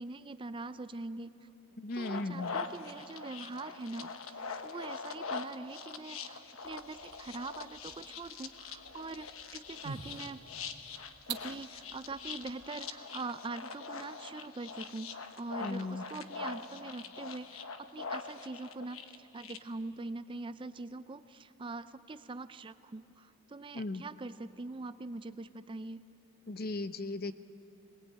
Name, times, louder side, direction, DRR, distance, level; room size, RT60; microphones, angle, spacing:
voice 1, 0.0-1.4 1.9-10.5 11.3-26.0, right 3 dB, 25° right, 13 dB, 0.4 m, -43 dB
voice 2, 1.8-2.6 15.6-16.0 23.7-24.0 26.5-27.3, left 2 dB, 45° left, 11 dB, 0.7 m, -37 dB
sound 1, 1.9-19.6, left 5 dB, 80° left, 1.1 m, -43 dB
sound 2, 6.6-12.7, right 6 dB, 55° right, 1.0 m, -49 dB
21.5 x 20.0 x 8.7 m, 2.9 s
head